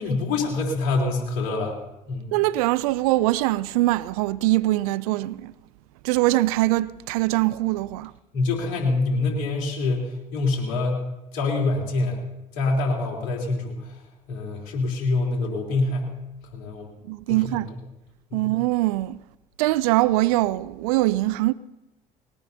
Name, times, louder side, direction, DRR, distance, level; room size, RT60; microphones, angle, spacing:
voice 1, 0.0-1.8 2.1-2.3 8.3-11.0 11.3-12.2 12.5-14.0 14.3-16.1 16.4-16.9 17.3-17.7 18.3-18.5, left 3 dB, 70° left, 3.6 m, -25 dB
voice 2, 2.3-5.5 6.0-8.1 17.1-17.7 18.3-19.2 19.6-21.5, right 18 dB, 80° right, 0.5 m, -22 dB
20.0 x 18.0 x 2.8 m
hypercardioid pair, 65°, 18 cm